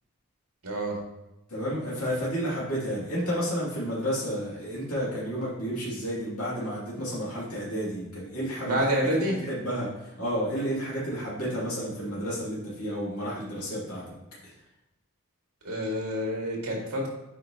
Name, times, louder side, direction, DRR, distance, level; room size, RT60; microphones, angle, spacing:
voice 1, 0.6-1.0 8.6-9.4 15.6-17.1, equal, 75° right, -2 dB, 2.0 m, -28 dB
voice 2, 1.5-14.0, equal, 80° left, -7 dB, 2.5 m, -31 dB
8.4 x 4.6 x 2.9 m, 0.93 s
head